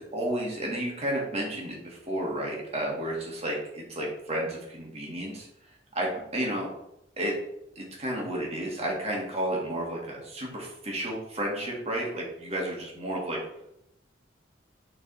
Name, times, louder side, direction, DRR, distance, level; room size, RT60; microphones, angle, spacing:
voice 1, 0.0-5.5 5.9-6.7 7.2-7.4 7.7-13.4, right 1 dB, 35° right, -2 dB, 1.7 m, -32 dB
6.9 x 3.9 x 3.8 m, 0.83 s
head